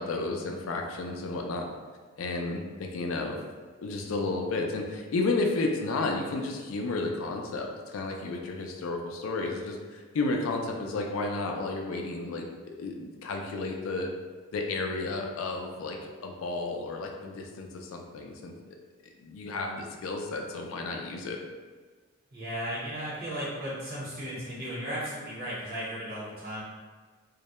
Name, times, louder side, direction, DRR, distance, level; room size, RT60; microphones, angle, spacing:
voice 1, 0.0-1.7 2.2-3.4 3.8-12.5 12.8-14.1 14.5-18.5 19.2-21.4, left 3 dB, 75° left, 2 dB, 0.4 m, -32 dB
voice 2, 22.3-26.6, equal, 45° right, -9 dB, 1.0 m, -35 dB
2.2 x 2.0 x 2.9 m, 1.4 s
head